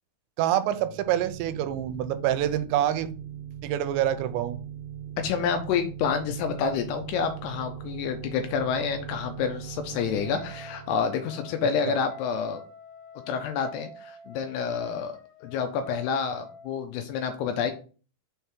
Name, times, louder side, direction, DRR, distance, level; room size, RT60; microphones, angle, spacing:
voice 1, 0.4-3.2 3.6-4.6 11.9-12.0, right 11 dB, 85° right, 11 dB, 2.8 m, -26 dB
sound 1, 0.7-12.3, right 9 dB, 65° right, 2.3 m, -40 dB
voice 2, 5.2-12.6 13.3-17.7, left 6 dB, 80° left, 6 dB, 2.5 m, -28 dB
Wind instrument woodwind instrument, 10.2-16.8, left 3 dB, 60° left, 2.3 m, -47 dB
6.5 x 3.4 x 4.4 m, 0.37 s
omnidirectional pair, 5.2 m